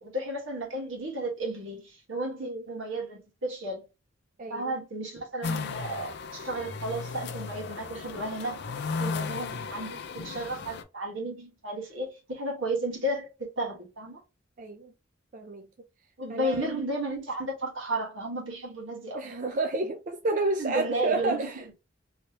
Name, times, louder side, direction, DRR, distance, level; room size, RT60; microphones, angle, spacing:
voice 1, 0.0-3.9 4.5-8.6 9.0-14.2 16.2-19.2 20.6-21.7, right 1 dB, 85° right, 1.5 m, -33 dB
voice 2, 4.4-4.7 9.9-10.0 14.6-14.9 15.3-15.7 16.3-16.7 19.1-21.7, right 2 dB, 40° right, 0.4 m, -30 dB
sound 1, 5.4-10.8, left 4 dB, 60° left, 0.4 m, -35 dB
3.1 x 2.8 x 2.9 m
head